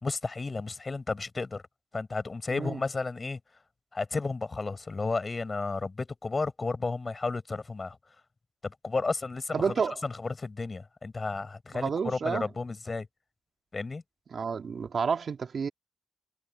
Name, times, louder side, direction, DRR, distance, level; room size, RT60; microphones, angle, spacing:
voice 1, 0.0-1.6 1.9-3.4 3.9-8.0 8.6-9.7 10.0-13.1 13.7-14.0, left 3 dB, 40° left, 4.7 m, -32 dB
voice 2, 2.5-2.8 9.5-10.0 11.7-12.5 14.3-15.7, right 6 dB, 65° right, 2.4 m, -30 dB
cardioid pair, 50°, 0 cm